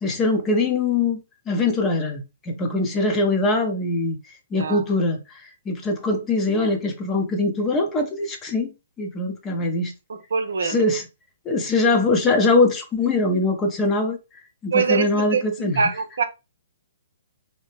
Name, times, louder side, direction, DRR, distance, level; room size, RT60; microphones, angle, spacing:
voice 1, 0.0-4.2 4.5-9.9 10.6-11.0 11.5-14.2 14.6-15.8, left 2 dB, 20° left, 0.7 m, -22 dB
voice 2, 4.5-4.8 10.1-10.8 14.7-16.2, right 5 dB, 70° right, 0.6 m, -24 dB
2.7 x 2.1 x 3.3 m
figure-of-eight pair, 125°, 0 cm